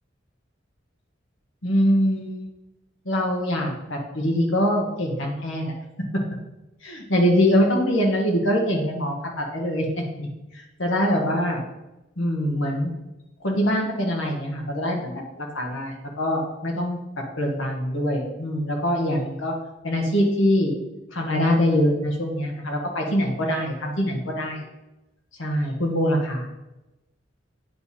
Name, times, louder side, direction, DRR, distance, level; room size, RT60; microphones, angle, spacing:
voice 1, 1.6-2.5 3.0-5.7 6.1-6.2 6.8-9.9 10.1-10.3 10.5-11.6 12.2-12.9 13.4-17.0 17.4-19.5 19.8-20.7 21.1-24.6 25.4-26.5, equal, 90° left, 0 dB, 1.4 m, -23 dB
9.2 x 3.4 x 4.2 m, 0.98 s
head